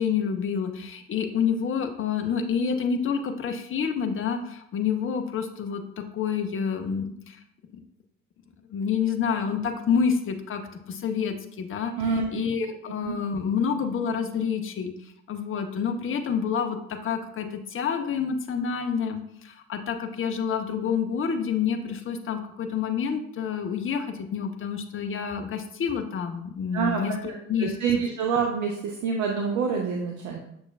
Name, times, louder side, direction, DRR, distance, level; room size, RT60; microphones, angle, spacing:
voice 1, 0.0-7.4 8.7-10.6 10.9-27.7, left 6 dB, 30° left, 6 dB, 0.6 m, -28 dB
voice 2, 12.0-12.3 13.0-13.2 26.7-27.0 27.6-30.4, right 5 dB, 50° right, 1 dB, 0.6 m, -26 dB
6.2 x 2.3 x 2.3 m, 0.72 s
figure-of-eight pair, 45°, 39 cm